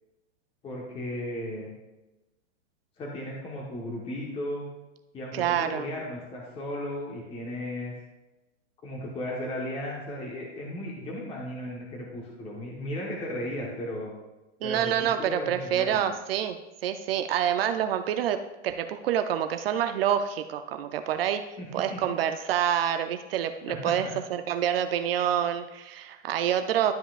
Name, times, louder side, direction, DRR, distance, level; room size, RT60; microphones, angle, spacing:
voice 1, 0.6-1.7 3.0-4.7 5.1-7.9 8.8-14.1 14.6-16.1 21.6-22.0 23.7-24.1, left 1 dB, 15° left, -2 dB, 1.2 m, -35 dB
voice 2, 5.3-5.9 14.6-16.6 16.8-21.4 21.7-26.9, right 10 dB, 50° right, 8 dB, 0.6 m, -27 dB
12.0 x 5.5 x 2.4 m, 1.0 s
hypercardioid pair, 150°, 38 cm